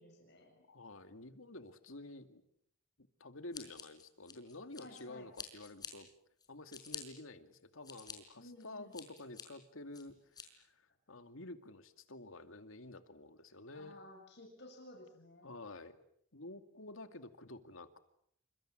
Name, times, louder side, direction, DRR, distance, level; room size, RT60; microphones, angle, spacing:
voice 1, 0.0-0.6 4.8-5.3 8.4-9.0 13.7-15.5, left 1 dB, 55° left, 2 dB, 7.3 m, -55 dB
voice 2, 0.7-2.4 3.0-6.1 6.5-14.0 15.4-16.0 16.3-18.0, left 2 dB, 80° left, 8 dB, 2.4 m, -50 dB
Scissors, 3.5-5.0 5.3-5.9 6.4-7.0 7.5-8.1 8.6-9.4 9.9-10.4, left 6 dB, 20° left, 5.4 m, -47 dB
29.0 x 26.0 x 7.7 m, 0.69 s
head